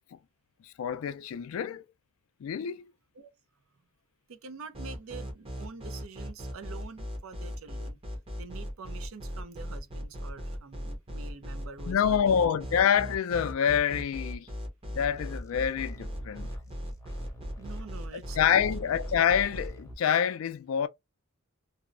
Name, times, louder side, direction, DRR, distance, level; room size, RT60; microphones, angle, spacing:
voice 1, 0.6-1.9 2.4-2.9 11.9-14.5 14.9-16.5 18.1-20.9, left 8 dB, 75° left, 0.3 m, -27 dB
voice 2, 4.3-8.0 8.4-12.4 17.6-18.6, right 4 dB, 75° right, 0.5 m, -46 dB
sound 1, 4.7-19.7, equal, 30° right, 0.7 m, -37 dB
sound 2, 14.9-19.9, equal, 15° left, 0.6 m, -48 dB
2.6 x 2.0 x 2.5 m
head